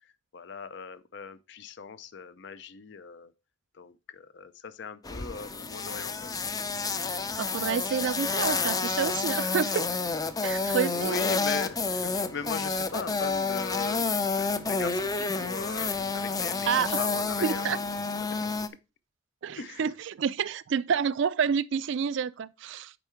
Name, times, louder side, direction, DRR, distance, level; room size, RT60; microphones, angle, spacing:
voice 1, 0.0-3.3 3.7-6.4 10.9-17.9 18.2-18.4 19.6-19.9, left 6 dB, 65° left, 0.5 m, -39 dB
sound 1, 5.0-18.7, left 4 dB, 20° left, 0.4 m, -29 dB
voice 2, 7.4-9.9 10.4-11.2 16.7-17.0 17.4-17.8 19.4-22.9, right 7 dB, 65° right, 0.4 m, -29 dB
6.9 x 4.6 x 4.5 m
head